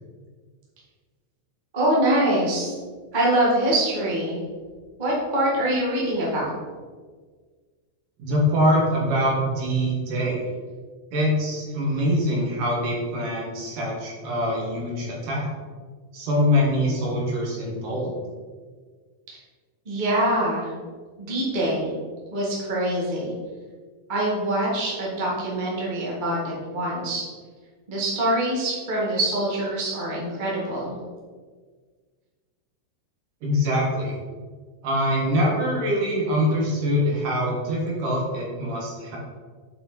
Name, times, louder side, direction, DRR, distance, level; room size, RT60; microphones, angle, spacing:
voice 1, 1.7-2.7 3.1-4.4 5.0-6.5 19.3-19.4 19.8-20.7 21.2-21.9 22.3-23.3 24.1-27.2 27.9-30.9, right 1 dB, 20° right, -6 dB, 1.2 m, -24 dB
voice 2, 8.2-10.4 11.1-15.5 16.1-18.1 33.4-34.2 34.8-39.2, equal, 70° right, -2 dB, 3.1 m, -24 dB
8.0 x 5.1 x 4.3 m, 1.5 s
omnidirectional pair, 3.9 m